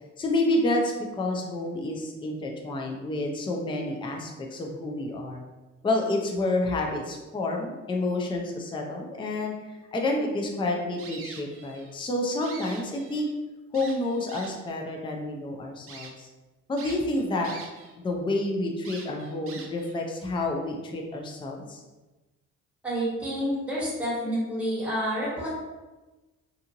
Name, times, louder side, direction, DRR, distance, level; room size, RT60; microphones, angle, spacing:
voice 1, 0.2-5.4 5.8-9.5 9.9-13.3 13.7-16.3 16.7-17.5 18.0-21.8, left 2 dB, 15° left, 1 dB, 0.4 m, -29 dB
sound 1, 11.0-11.9 12.3-13.3 13.7-14.7 15.3-15.4 15.9-16.1 16.8-17.9 18.2-18.3 18.8-19.9, right 5 dB, 50° right, 0.5 m, -44 dB
voice 2, 22.8-25.5, equal, 5° right, -8 dB, 1.3 m, -29 dB
2.6 x 2.4 x 2.8 m, 1.1 s
cardioid pair, 90°, 30 cm